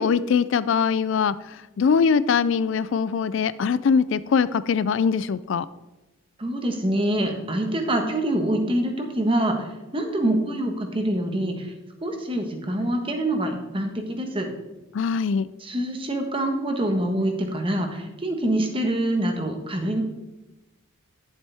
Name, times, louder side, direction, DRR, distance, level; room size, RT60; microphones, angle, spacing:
voice 1, 0.0-1.4 1.8-5.7 14.9-15.5, left 6 dB, 65° left, 16 dB, 0.3 m, -22 dB
voice 2, 6.4-9.7 9.9-11.7 12.0-14.5 15.6-20.0, right 1 dB, 25° right, 4 dB, 1.3 m, -25 dB
11.5 x 7.4 x 3.5 m, 1.1 s
head